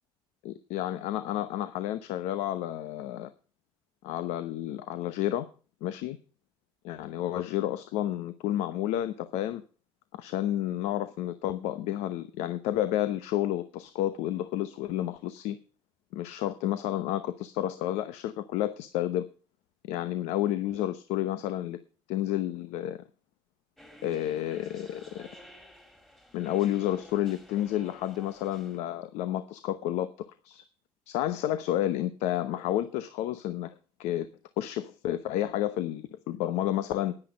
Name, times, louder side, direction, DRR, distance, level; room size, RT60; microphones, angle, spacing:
voice 1, 0.4-3.3 4.0-5.5 5.8-6.2 6.8-9.6 10.1-15.6 16.1-19.3 19.9-21.8 22.1-23.0 24.0-25.3 26.3-30.1 30.4-30.6 31.1-33.7 34.0-34.3 34.6-37.1, left 13 dB, 85° left, 12 dB, 0.9 m, -30 dB
sound 1, 23.8-28.8, equal, 5° left, 2.3 m, -52 dB
10.0 x 10.0 x 5.3 m, 0.37 s
cardioid pair, 120°, 11 cm